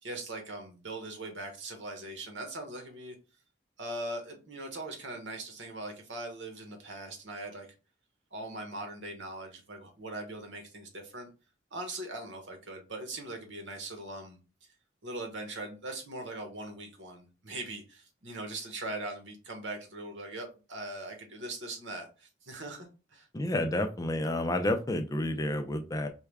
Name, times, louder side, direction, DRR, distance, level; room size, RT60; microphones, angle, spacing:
voice 1, 0.0-3.2 3.8-7.7 8.3-11.3 11.7-14.4 15.0-23.3, right 2 dB, 80° right, 4 dB, 1.1 m, -40 dB
voice 2, 23.3-26.1, left 1 dB, 20° left, 7 dB, 0.4 m, -30 dB
4.6 x 2.2 x 3.4 m, 0.32 s
head